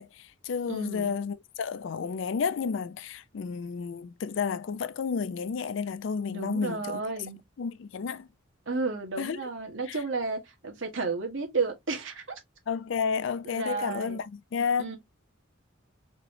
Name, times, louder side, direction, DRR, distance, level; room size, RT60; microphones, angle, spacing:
voice 1, 0.0-7.0 7.6-8.3 9.2-9.4 9.9-10.0 12.7-15.0, left 6 dB, 65° left, 0.4 m, -31 dB
voice 2, 0.7-1.1 6.3-7.4 8.7-12.4 13.4-14.2 14.8-15.0, right 4 dB, 70° right, 1.4 m, -32 dB
4.2 x 3.1 x 2.6 m
head